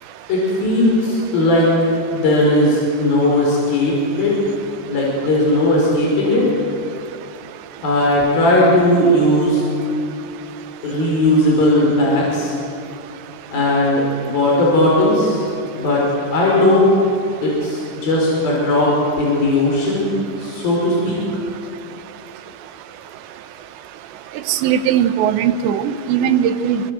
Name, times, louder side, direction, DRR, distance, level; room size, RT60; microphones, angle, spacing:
voice 1, 0.3-1.7 2.1-4.4 4.9-6.5 7.8-9.6 10.8-12.5 13.5-15.4 15.7-16.1 16.3-16.9 17.4-21.2, left 1 dB, 55° left, -3 dB, 6.9 m, -17 dB
voice 2, 24.5-26.8, right 9 dB, 80° right, 10 dB, 3.3 m, -18 dB
28.0 x 25.5 x 7.8 m, 2.6 s
omnidirectional pair, 5.0 m